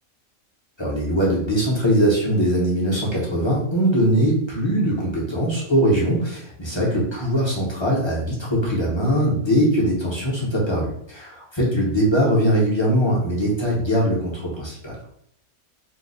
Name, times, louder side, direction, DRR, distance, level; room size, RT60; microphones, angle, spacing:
voice 1, 0.8-15.0, equal, 35° left, -5 dB, 0.5 m, -21 dB
2.8 x 2.0 x 3.8 m, 0.71 s
omnidirectional pair, 1.5 m